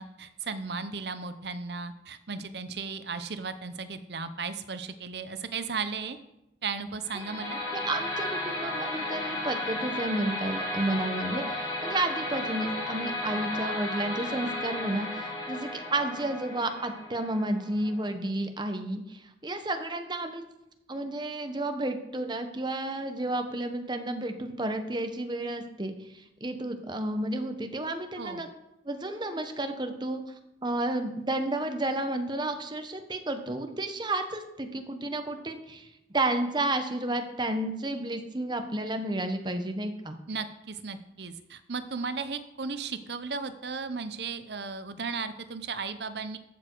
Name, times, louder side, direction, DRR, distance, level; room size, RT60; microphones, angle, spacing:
voice 1, 0.0-6.2 6.6-7.6 28.2-28.5 40.3-46.4, right 4 dB, 70° right, 11 dB, 0.8 m, -35 dB
sound 1, 7.0-18.1, left 1 dB, 20° left, 2.7 m, -34 dB
voice 2, 7.7-20.4 20.9-25.9 26.4-28.5 28.9-30.2 30.6-35.9 36.1-40.2, right 1 dB, 25° right, 7 dB, 1.1 m, -31 dB
14.0 x 7.0 x 4.6 m, 0.89 s
head